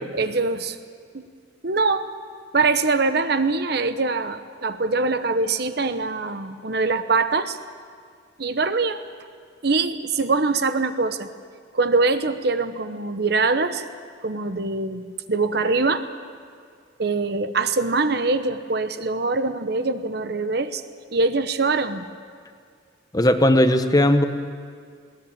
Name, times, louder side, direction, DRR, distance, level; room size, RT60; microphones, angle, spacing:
voice 1, 0.1-0.8 1.1-1.3 1.6-2.1 2.5-7.6 8.4-9.0 9.6-11.3 11.7-13.9 14.2-16.1 17.0-20.8 21.1-22.1, right 3 dB, 55° right, 10 dB, 1.0 m, -23 dB
voice 2, 23.1-24.2, left 1 dB, 20° left, 8 dB, 1.0 m, -17 dB
20.5 x 18.0 x 8.9 m, 2.1 s
head